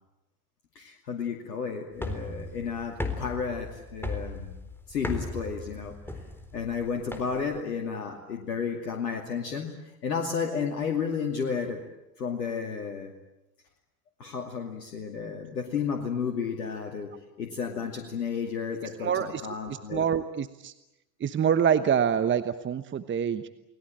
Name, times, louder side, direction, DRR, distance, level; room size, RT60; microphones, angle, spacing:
voice 1, 0.7-4.5 4.9-6.2 6.5-11.8 12.2-13.1 14.2-17.1 17.4-20.0, left 6 dB, 80° left, 3 dB, 2.7 m, -32 dB
sound 1, 1.9-7.6, left 2 dB, 5° left, 3.9 m, -37 dB
voice 2, 19.0-19.4 19.9-20.7 21.2-23.5, right 8 dB, 25° right, 12 dB, 1.1 m, -26 dB
29.5 x 20.5 x 8.9 m, 0.93 s
hypercardioid pair, 85°, 47 cm